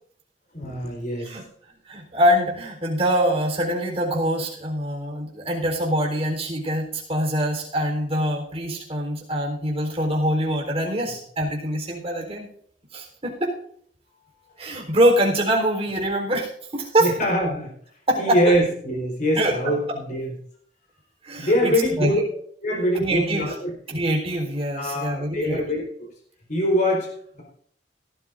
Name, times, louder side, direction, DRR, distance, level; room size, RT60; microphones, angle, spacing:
voice 1, 0.5-1.3 17.0-17.7 18.2-20.3 21.4-22.3 22.6-23.7 24.7-26.1 26.5-27.4, equal, 50° left, 1 dB, 4.3 m, -24 dB
voice 2, 1.9-12.5 12.9-13.5 14.6-17.1 18.1-18.6 19.4-19.7 21.2-21.7 22.0-22.1 23.0-23.5 23.9-25.6, equal, 35° right, 1 dB, 3.9 m, -24 dB
17.5 x 12.5 x 2.6 m, 0.62 s
head